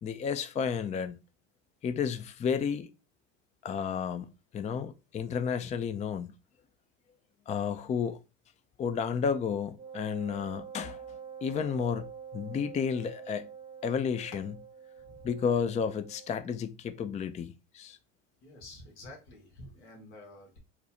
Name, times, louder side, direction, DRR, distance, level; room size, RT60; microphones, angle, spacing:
voice 1, 0.0-1.2 1.8-2.9 3.6-6.3 7.5-8.2 8.8-11.0 11.4-12.1 12.3-13.5 13.8-14.5 15.2-18.0, left 6 dB, 20° left, 0.4 m, -32 dB
Wind instrument woodwind instrument, 9.8-16.4, right 7 dB, 15° right, 0.7 m, -46 dB
voice 2, 18.4-20.6, left 1 dB, 80° left, 1.8 m, -50 dB
4.1 x 2.3 x 4.2 m
hypercardioid pair, 90°, 34 cm